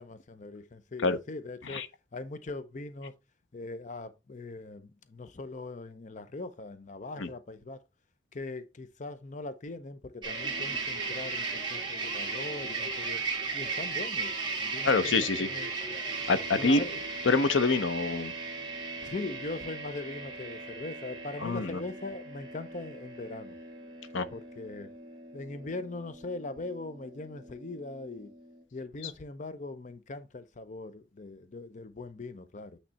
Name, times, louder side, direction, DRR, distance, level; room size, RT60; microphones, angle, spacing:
voice 1, 0.0-1.8 2.1-3.1 3.5-7.8 8.3-13.2 13.5-15.7 16.6-17.0 19.0-23.6 24.3-24.9 25.3-28.3 28.7-32.8, left 2 dB, 40° left, 0.6 m, -41 dB
sound 1, 10.2-28.6, right 3 dB, 25° right, 1.8 m, -37 dB
voice 2, 14.8-15.5 16.3-16.8 17.2-18.3 21.4-21.8 24.1-24.3, left 3 dB, 85° left, 0.8 m, -26 dB
8.7 x 3.3 x 4.1 m
head